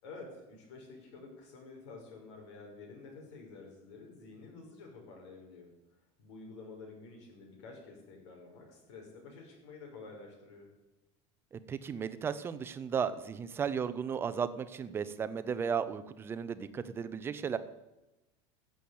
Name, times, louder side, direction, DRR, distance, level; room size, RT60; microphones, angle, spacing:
voice 1, 0.0-5.7 6.2-10.7, left 3 dB, 80° left, 1 dB, 5.9 m, -50 dB
voice 2, 11.5-17.6, right 7 dB, 15° right, 13 dB, 0.6 m, -35 dB
14.0 x 7.8 x 8.6 m, 1.0 s
cardioid pair, 175°, 15 cm